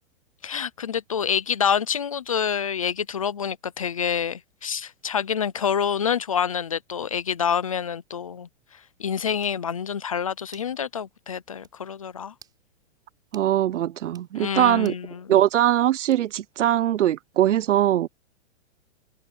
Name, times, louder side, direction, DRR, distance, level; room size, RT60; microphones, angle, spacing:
voice 1, 0.4-8.5 9.0-12.3 14.3-15.4, left 7 dB, 30° left, 0.4 m, -27 dB
sound 1, 9.4-9.6 10.5-10.8 11.1-11.2 11.6-11.8 12.3-12.6 13.3-13.5 14.0-14.3 14.8-15.1 16.1-16.5, right 8 dB, 10° right, 5.3 m, -53 dB
voice 2, 13.3-14.9 15.3-18.1, right 12 dB, 90° right, 0.9 m, -21 dB
hypercardioid pair, 180°, 35 cm